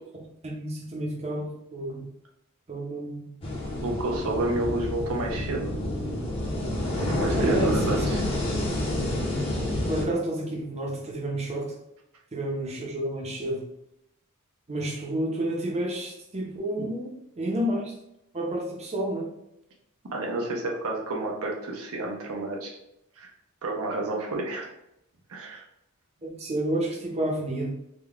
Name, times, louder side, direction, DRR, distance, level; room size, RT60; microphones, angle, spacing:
voice 1, 0.1-2.1 2.7-3.3 7.3-8.0 9.9-11.7 12.3-13.6 14.7-17.1 17.4-17.9 18.3-19.3 26.2-27.7, right 1 dB, 30° right, -2 dB, 0.7 m, -30 dB
sound 1, 3.4-10.0, left 1 dB, 25° left, 0.8 m, -28 dB
voice 2, 3.8-5.7 7.0-8.2 20.1-22.8 23.2-23.3 23.6-24.7 25.3-25.6, right 2 dB, 70° right, -1 dB, 0.7 m, -30 dB
3.7 x 2.3 x 3.4 m, 0.81 s
head